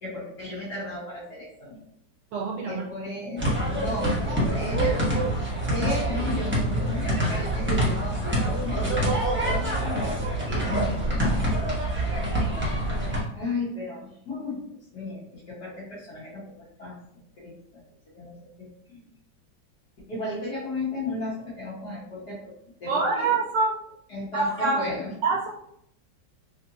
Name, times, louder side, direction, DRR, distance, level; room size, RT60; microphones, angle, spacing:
voice 1, 0.0-1.8 2.7-3.5 3.7-5.0 5.7-11.5 13.3-14.6 14.9-17.0 17.4-17.8 18.1-19.1 20.1-22.5 22.8-23.3 24.1-25.1, left 2 dB, 60° left, -9 dB, 1.8 m, -35 dB
voice 2, 2.3-2.8 22.9-23.7 24.3-24.8 25.2-25.5, right 3 dB, 75° right, -1 dB, 1.2 m, -25 dB
sound 1, 3.4-13.2, right 1 dB, 10° right, 0.6 m, -26 dB
3.5 x 2.8 x 2.7 m, 0.70 s
omnidirectional pair, 2.0 m